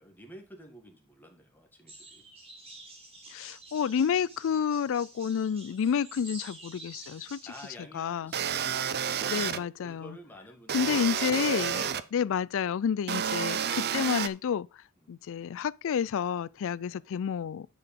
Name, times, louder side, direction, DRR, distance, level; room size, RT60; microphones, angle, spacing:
voice 1, 0.0-2.2 7.5-11.4 11.6-11.9 15.0-15.2 16.9-17.0, equal, 10° left, 1.8 m, -51 dB
sound 1, 1.9-7.7, right 2 dB, 30° right, 2.5 m, -49 dB
voice 2, 3.3-7.4 7.9-8.3 9.3-10.2 10.7-11.8 12.1-14.7 15.1-17.7, left 7 dB, 65° left, 0.4 m, -29 dB
sound 2, 8.3-9.6 10.7-12.0 13.1-14.3, right 8 dB, 50° right, 0.6 m, -30 dB
9.8 x 4.9 x 5.2 m
head